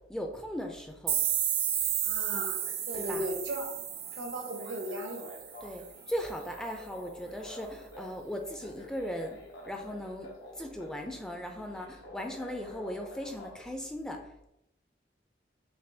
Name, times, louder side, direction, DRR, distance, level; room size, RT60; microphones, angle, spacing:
voice 1, 0.1-1.2 2.9-3.3 5.6-9.4 9.7-10.3 10.6-14.2, equal, 5° left, 3 dB, 0.4 m, -38 dB
sound 1, 1.1-5.7, right 9 dB, 60° right, 0.5 m, -32 dB
voice 2, 2.0-2.6 2.9-3.7 4.1-5.2, equal, 80° right, 2 dB, 1.0 m, -36 dB
sound 2, 2.4-13.7, left 1 dB, 90° left, 0.9 m, -50 dB
6.6 x 2.3 x 2.7 m, 0.80 s
head